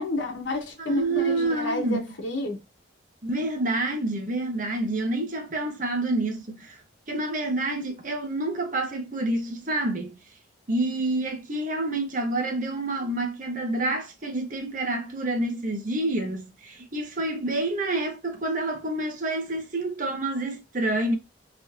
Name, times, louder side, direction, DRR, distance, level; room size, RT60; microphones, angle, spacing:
voice 1, 0.0-2.6, left 1 dB, 85° left, 0.9 m, -30 dB
voice 2, 0.8-2.1 3.2-6.8 7.1-10.1 10.7-21.2, right 2 dB, 45° right, 0.9 m, -28 dB
3.1 x 2.6 x 3.2 m
head